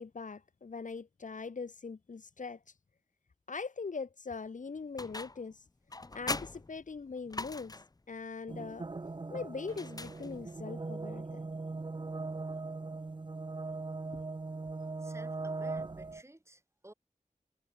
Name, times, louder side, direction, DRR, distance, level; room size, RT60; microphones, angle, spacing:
voice 1, 0.0-2.6 3.5-5.6 6.1-7.7 8.1-8.9 9.3-11.5, left 4 dB, 80° left, 1.1 m, -41 dB
sound 1, 5.0-5.5 5.9-8.0 9.7-10.6, left 2 dB, 30° left, 0.7 m, -41 dB
sound 2, 8.5-16.2, right 3 dB, 35° right, 0.7 m, -40 dB
voice 2, 15.0-16.9, right 1 dB, 20° right, 1.7 m, -55 dB
wide cardioid pair, 65°, 13 cm